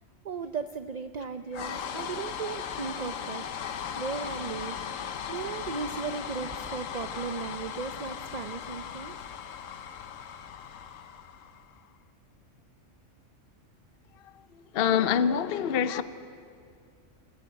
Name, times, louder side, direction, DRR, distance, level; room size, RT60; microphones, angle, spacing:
voice 1, 0.2-3.5 3.9-4.8 5.3-9.3, right 5 dB, 45° right, 0.5 m, -36 dB
sound 1, 1.5-11.8, left 8 dB, 85° left, 1.2 m, -38 dB
voice 2, 14.7-16.0, left 8 dB, 55° left, 0.8 m, -25 dB
26.5 x 15.0 x 8.7 m
omnidirectional pair, 1.3 m